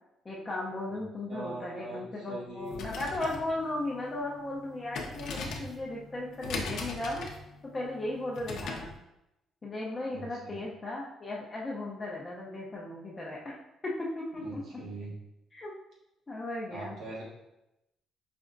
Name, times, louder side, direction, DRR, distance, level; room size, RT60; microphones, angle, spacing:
voice 1, 0.2-7.3 7.7-8.9 9.6-13.5 13.8-14.6 15.5-15.7 16.3-16.9, left 2 dB, 20° left, -4 dB, 0.6 m, -36 dB
voice 2, 1.3-3.0 10.1-10.6 14.4-15.2 16.7-17.2, right 2 dB, 65° right, -5 dB, 1.5 m, -41 dB
sound 1, 2.6-9.0, left 3 dB, 65° left, 0.6 m, -40 dB
5.1 x 3.4 x 2.5 m, 0.89 s
cardioid pair, 145°, 0 cm